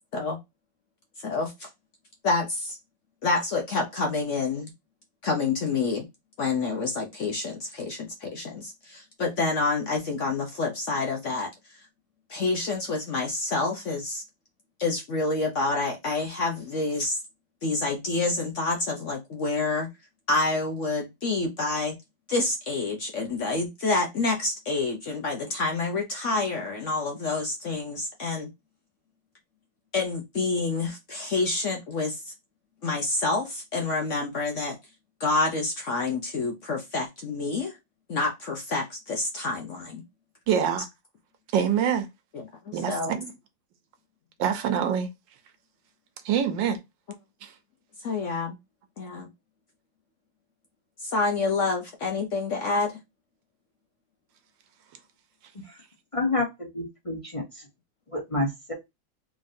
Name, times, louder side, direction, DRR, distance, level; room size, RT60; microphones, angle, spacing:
voice 1, 1.2-1.7 2.2-2.8 3.2-4.7 5.2-6.0 6.4-11.5 12.3-14.2 14.8-17.2 17.6-19.9 20.3-22.0 22.3-28.5 29.9-32.3 32.8-34.8 35.2-37.7 38.1-40.0 42.7-43.2 48.0-48.6 49.0-49.3 51.0-52.9, left 3 dB, 60° left, 0.8 m, -28 dB
voice 2, 40.5-40.9 41.5-42.1 42.7-43.3 44.4-45.1 46.2-46.8 47.4-47.5, right 8 dB, 90° right, 1.5 m, -25 dB
voice 3, 56.1-57.6 58.1-58.7, left 2 dB, 25° left, 0.7 m, -29 dB
3.7 x 3.6 x 2.6 m
omnidirectional pair, 2.0 m